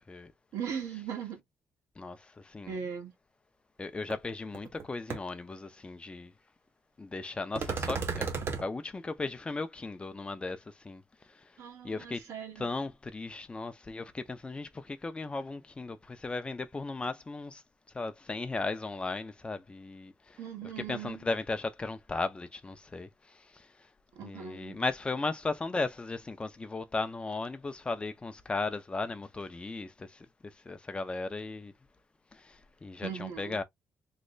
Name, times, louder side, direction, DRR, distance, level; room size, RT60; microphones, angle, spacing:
voice 1, 0.5-1.4 2.7-3.1 11.6-12.7 20.4-21.3 24.1-24.8 33.0-33.6, right 7 dB, 80° right, 1.4 m, -39 dB
voice 2, 2.4-2.7 3.8-6.3 7.0-8.3 8.6-10.6 10.8-11.0 11.8-12.2 12.6-17.6 17.9-23.1 24.2-30.1 30.7-31.7 32.5-32.6 32.8-33.6, left 3 dB, 20° left, 0.6 m, -36 dB
sound 1, 4.1-4.2 4.5-4.8 5.1-5.2 7.6-8.6, right 5 dB, 45° right, 1.1 m, -33 dB
3.2 x 2.1 x 3.8 m
cardioid pair, 125°, 5 cm